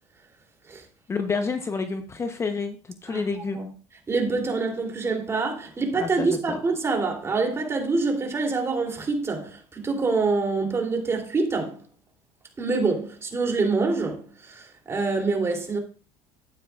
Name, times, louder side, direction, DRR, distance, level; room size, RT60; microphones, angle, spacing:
voice 1, 1.1-3.8 6.0-6.6, left 4 dB, 25° left, 0.9 m, -29 dB
voice 2, 3.1-3.7 4.1-11.8 12.6-15.8, right 3 dB, 25° right, 3.1 m, -26 dB
12.0 x 9.1 x 2.5 m
supercardioid pair, 110°, 11 cm